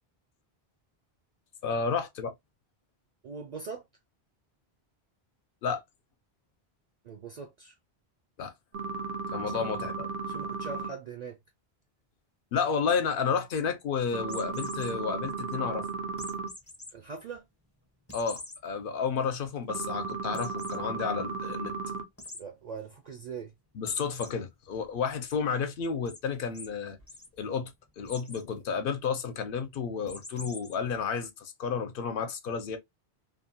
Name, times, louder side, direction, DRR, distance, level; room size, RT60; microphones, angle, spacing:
voice 1, 1.6-2.3 5.6-5.8 8.4-8.5 9.3-10.1 12.5-15.9 18.1-21.7 23.7-27.0 27.4-32.8, left 6 dB, 65° left, 0.7 m, -31 dB
voice 2, 3.2-3.8 7.0-7.7 9.5-9.7 10.3-11.4 16.9-17.4 22.4-23.5, right 5 dB, 55° right, 0.5 m, -41 dB
sound 1, 8.7-10.9 14.1-16.5 19.7-22.0, right 4 dB, 80° right, 0.9 m, -35 dB
sound 2, 14.3-14.9 16.2-16.9 17.3-17.4 18.1-18.6 19.1-19.2 19.5-19.6 20.3-20.8 22.2-22.4 23.9-24.3 24.7-25.3 26.1-26.2 26.5-26.7 27.0-27.3 28.0-28.4 30.1-30.7, left 2 dB, 20° left, 0.5 m, -44 dB
2.6 x 2.2 x 2.6 m
omnidirectional pair, 1.0 m